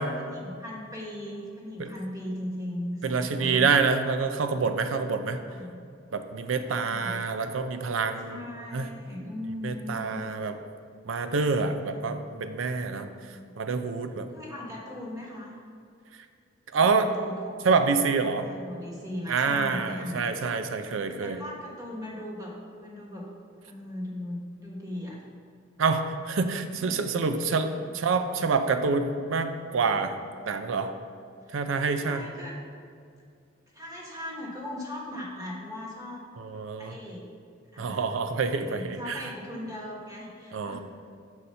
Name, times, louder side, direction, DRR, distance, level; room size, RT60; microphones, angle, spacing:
voice 1, 0.0-3.7 5.3-5.8 6.6-7.2 8.2-10.2 11.8-12.1 12.8-13.5 14.3-15.6 16.7-17.7 18.2-20.3 21.1-23.3 23.7-25.2 26.7-27.0 31.4-31.6 32.0-32.6 33.7-36.2 36.8-37.3 37.7-38.1 38.6-40.8, left 1 dB, 20° right, -3 dB, 1.2 m, -38 dB
voice 2, 3.0-5.4 6.1-8.4 8.7-8.9 9.6-10.5 11.1-13.1 13.6-14.3 16.7-17.1 17.6-18.5 19.3-21.4 25.8-30.1 30.5-30.9 31.5-32.2 36.4-37.0 37.8-39.2 40.5-40.8, right 4 dB, 80° right, 9 dB, 0.5 m, -27 dB
6.4 x 4.2 x 5.4 m, 2.3 s
head